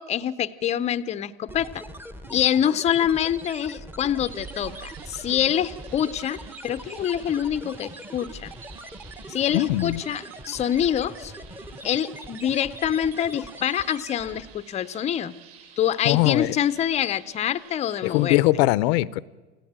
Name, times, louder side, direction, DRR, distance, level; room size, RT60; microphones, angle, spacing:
voice 1, 0.0-1.8 2.3-8.5 9.3-11.3 11.8-15.3 15.8-18.4, left 10 dB, 20° left, 14 dB, 0.6 m, -25 dB
sound 1, 1.5-14.6, right 1 dB, 5° right, 1.0 m, -41 dB
sound 2, 4.1-18.3, right 8 dB, 50° right, 7.7 m, -50 dB
voice 2, 9.5-10.0 16.0-16.5 18.0-19.2, left 17 dB, 85° left, 19 dB, 0.8 m, -21 dB
28.5 x 16.5 x 8.8 m, 1.3 s
cardioid pair, 155°, 31 cm